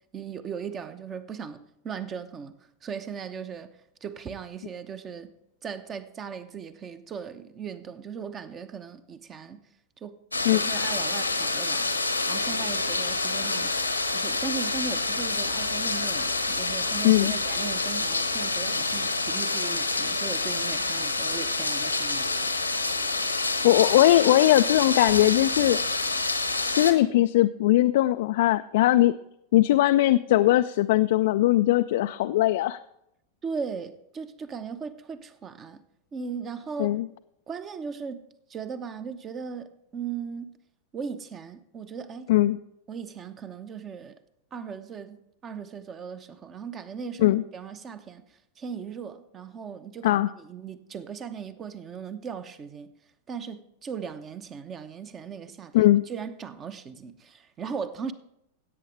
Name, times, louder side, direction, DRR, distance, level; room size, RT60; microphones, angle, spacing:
voice 1, 0.1-2.5 2.8-3.7 4.0-5.3 5.6-9.6 10.0-10.2 10.5-11.9 12.3-13.7 14.1-22.7 33.4-35.8 36.1-37.0 37.5-38.2 38.5-40.5 40.9-42.3 42.9-44.2 44.5-52.9 53.3-58.1, right 6 dB, 25° right, 0.8 m, -38 dB
sound 1, 10.3-26.9, left 3 dB, 85° left, 1.0 m, -27 dB
voice 2, 17.0-17.4 23.6-25.8 26.7-29.2 29.5-32.8 36.8-37.1 42.3-42.6 47.2-47.4 50.0-50.3 55.7-56.0, left 15 dB, 55° left, 0.3 m, -20 dB
16.5 x 8.4 x 3.3 m
figure-of-eight pair, 90°, 0 cm